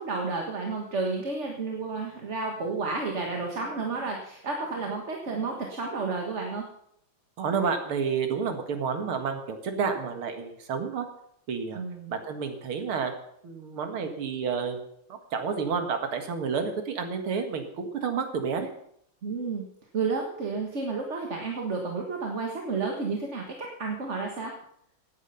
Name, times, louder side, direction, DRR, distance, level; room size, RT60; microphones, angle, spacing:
voice 1, 0.0-6.6 11.7-12.2 19.2-19.6 19.9-24.5, right 4 dB, 35° right, 1 dB, 1.7 m, -31 dB
voice 2, 7.4-11.1 11.5-11.8 12.1-13.1 13.4-18.7, right 6 dB, 90° right, 6 dB, 2.5 m, -30 dB
16.5 x 9.7 x 5.7 m, 0.72 s
omnidirectional pair, 2.3 m